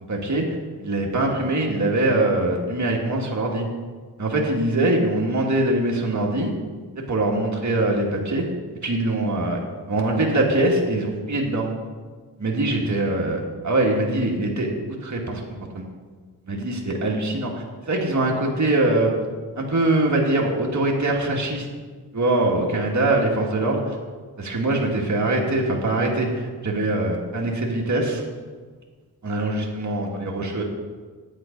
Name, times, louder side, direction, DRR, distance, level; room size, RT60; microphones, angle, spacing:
voice 1, 0.1-0.4 0.8-3.7 4.2-6.5 7.0-8.5 8.7-9.6 9.9-11.7 12.4-15.4 15.7-15.9 16.5-17.5 17.9-19.1 19.6-21.7 22.1-24.0 24.4-28.2 29.2-30.6, right 2 dB, 45° right, -1 dB, 1.9 m, -23 dB
9.5 x 8.4 x 5.2 m, 1.5 s
cardioid pair, 55°, 41 cm